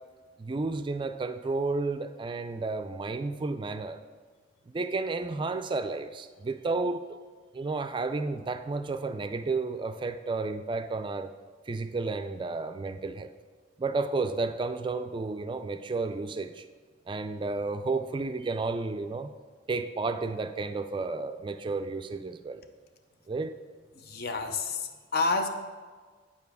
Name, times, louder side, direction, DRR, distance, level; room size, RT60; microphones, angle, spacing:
voice 1, 0.4-4.0 4.7-7.2 7.5-11.3 11.7-13.3 13.8-16.7 17.1-19.3 19.7-22.6 23.3-23.5, right 3 dB, 25° right, 9 dB, 0.3 m, -32 dB
voice 2, 23.9-25.5, left 3 dB, 50° left, 7 dB, 0.6 m, -29 dB
8.6 x 6.9 x 3.5 m, 1.5 s
head